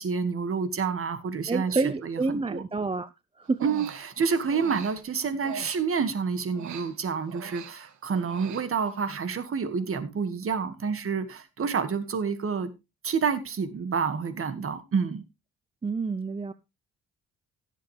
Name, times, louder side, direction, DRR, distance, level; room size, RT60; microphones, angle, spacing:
voice 1, 0.0-2.6 3.6-12.7 13.0-15.2, right 5 dB, 45° right, 2.0 m, -28 dB
voice 2, 1.5-3.1 3.4-3.7 15.8-16.5, right 3 dB, 20° right, 0.6 m, -28 dB
Human voice, 3.5-6.2 6.5-9.0, right 8 dB, 70° right, 1.9 m, -43 dB
17.0 x 7.5 x 3.4 m
cardioid pair, 90°, 30 cm